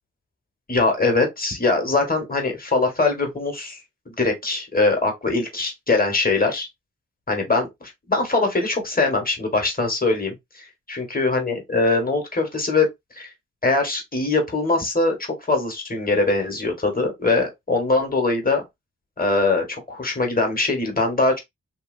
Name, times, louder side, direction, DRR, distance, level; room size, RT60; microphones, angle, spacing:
voice 1, 0.7-3.8 4.1-6.7 7.3-12.9 13.1-13.3 13.6-18.6 19.2-21.4, left 3 dB, 25° left, 1.4 m, -22 dB
3.0 x 2.7 x 2.6 m
cardioid pair, 60°, 32 cm